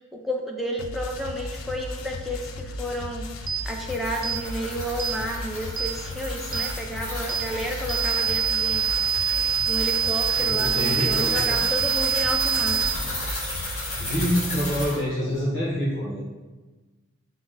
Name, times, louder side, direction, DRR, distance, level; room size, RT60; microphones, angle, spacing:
voice 1, 0.2-3.3 3.7-8.9 9.2-9.3 9.7-12.9, equal, ahead, -2 dB, 0.5 m, -31 dB
sound 1, 0.8-14.8, left 2 dB, 85° left, 0.4 m, -36 dB
sound 2, 3.5-3.6 4.2-4.4 5.0-5.2 5.8-5.9 6.5-6.7 7.3-7.5 7.9-12.9, right 8 dB, 85° right, 0.5 m, -25 dB
sound 3, 3.6-15.0, left 1 dB, 30° left, 1.2 m, -34 dB
voice 2, 10.4-11.6 14.0-16.2, equal, 60° left, -7 dB, 1.0 m, -26 dB
6.0 x 2.1 x 3.8 m, 1.2 s
head